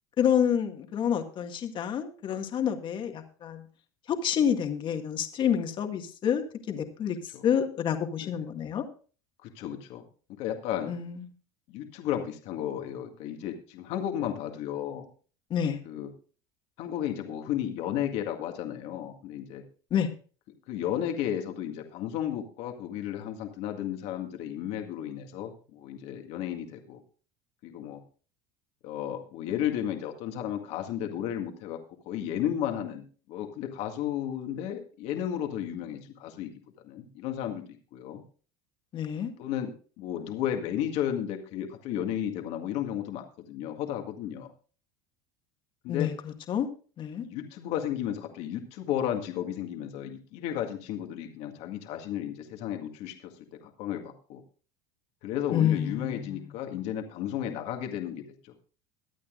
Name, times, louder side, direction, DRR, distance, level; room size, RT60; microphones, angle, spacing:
voice 1, 0.2-3.6 4.1-7.2 7.4-8.8 10.9-11.3 15.5-15.8 19.9-20.1 38.9-39.3 45.9-46.7 47.0-47.3 55.5-56.5, left 8 dB, 45° left, 5 dB, 1.9 m, -28 dB
voice 2, 9.4-10.0 10.4-10.9 11.7-15.1 15.9-16.1 16.8-19.6 20.7-27.0 27.6-28.0 28.8-31.8 32.1-36.5 36.8-37.6 37.9-38.2 39.4-39.7 40.0-44.5 45.8-46.1 47.2-53.3 53.8-54.4 55.2-58.5, left 10 dB, 65° left, 4 dB, 1.9 m, -33 dB
22.5 x 8.6 x 2.5 m, 0.39 s
supercardioid pair, 105°, 12 cm